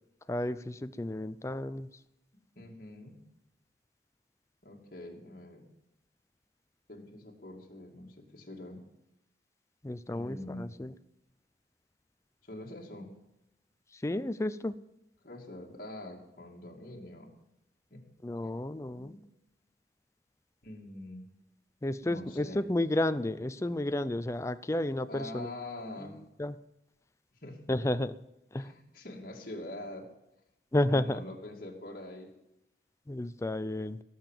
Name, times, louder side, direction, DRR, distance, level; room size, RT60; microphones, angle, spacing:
voice 1, 0.3-1.9 9.8-10.9 13.9-14.7 18.2-19.2 21.8-25.5 26.4-26.6 27.7-28.1 28.5-28.7 30.7-31.2 33.1-34.0, left 1 dB, 15° left, 12 dB, 0.4 m, -32 dB
voice 2, 2.6-3.2 4.6-5.6 6.9-8.8 10.1-10.8 12.4-13.1 15.2-17.3 17.9-18.0 18.4-18.5 19.0-19.3 20.6-21.3 22.0-22.7 25.1-26.2 27.4-27.7 28.6-30.1 30.9-32.3, left 1 dB, 55° left, 0 dB, 2.6 m, -44 dB
18.0 x 7.0 x 7.6 m, 0.89 s
head